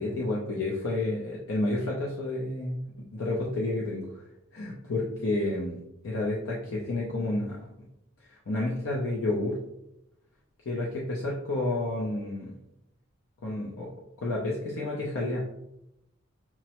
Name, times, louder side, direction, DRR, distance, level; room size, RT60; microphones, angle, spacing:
voice 1, 0.0-2.8 3.1-4.2 4.5-5.8 6.0-7.6 8.5-9.6 10.7-12.5 13.4-13.9 14.2-15.4, left 2 dB, 65° left, -3 dB, 0.6 m, -30 dB
5.8 x 2.1 x 2.9 m, 0.83 s
head